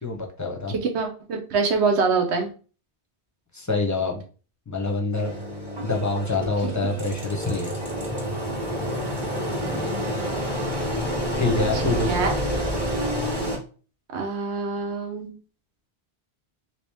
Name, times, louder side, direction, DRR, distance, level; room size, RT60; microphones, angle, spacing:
voice 1, 0.0-0.7 3.5-4.2 4.7-5.3 5.8-7.7 11.4-12.2, left 3 dB, 20° left, 2 dB, 0.6 m, -26 dB
voice 2, 0.7-2.5 9.5-9.8 11.7-12.3 14.1-15.3, right 4 dB, 85° right, 3 dB, 1.1 m, -25 dB
Engine, 5.1-13.6, equal, 25° right, 0.9 m, -28 dB
3.1 x 2.8 x 3.4 m, 0.38 s
omnidirectional pair, 1.1 m